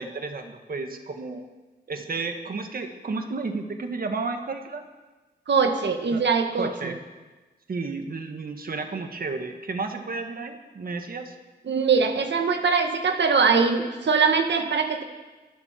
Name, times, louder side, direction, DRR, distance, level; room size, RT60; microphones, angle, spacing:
voice 1, 0.0-1.5 1.9-4.8 6.1-6.2 6.5-7.0 7.7-11.4, right 3 dB, 55° right, 5 dB, 1.7 m, -32 dB
voice 2, 5.5-6.9 11.7-15.0, right 5 dB, 85° right, 5 dB, 1.8 m, -22 dB
24.5 x 12.5 x 4.5 m, 1.2 s
wide cardioid pair, 165°, 18 cm